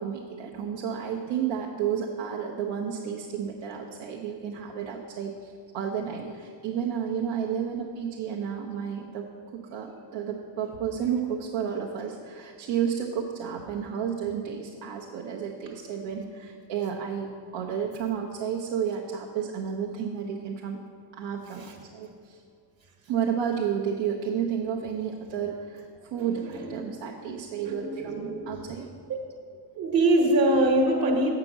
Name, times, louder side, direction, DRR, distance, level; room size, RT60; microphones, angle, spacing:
voice 1, 0.0-9.3 9.5-20.8 21.1-22.4 23.1-28.9, right 8 dB, 75° right, -1 dB, 0.9 m, -31 dB
voice 2, 26.2-26.9 27.1-28.7 29.1-29.2 29.7-31.3, right 1 dB, 50° right, 1 dB, 1.3 m, -25 dB
7.9 x 5.9 x 7.3 m, 2.3 s
cardioid pair, 155°, 46 cm